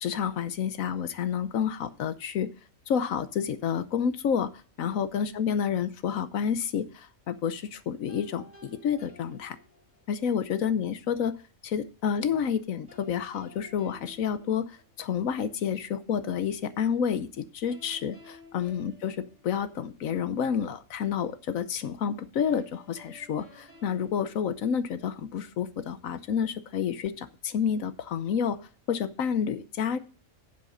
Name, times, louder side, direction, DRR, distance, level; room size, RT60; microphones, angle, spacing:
voice 1, 0.0-2.5 2.9-4.5 4.8-9.6 10.1-11.3 11.6-19.2 19.4-28.6 28.9-30.0, left 7 dB, 80° left, 12 dB, 1.2 m, -29 dB
sound 1, 8.1-10.2 12.9-15.3 17.7-20.2 22.5-25.3, left 2 dB, 10° right, 3.0 m, -54 dB
9.3 x 7.5 x 5.1 m, 0.39 s
omnidirectional pair, 1.4 m